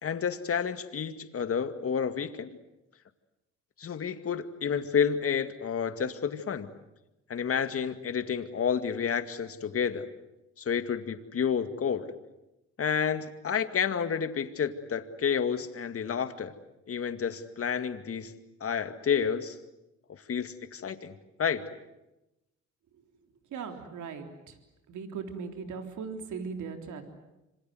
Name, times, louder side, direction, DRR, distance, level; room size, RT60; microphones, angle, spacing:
voice 1, 0.0-2.6 3.8-6.7 7.3-10.1 10.6-12.1 12.8-16.5 16.9-18.3 18.6-19.6 20.3-21.1 21.4-21.6, left 7 dB, 50° left, 9 dB, 2.1 m, -30 dB
voice 2, 23.5-24.5 24.9-27.0, right 5 dB, 75° right, 5 dB, 3.7 m, -38 dB
27.0 x 26.0 x 7.9 m, 0.94 s
cardioid pair, 90°, 30 cm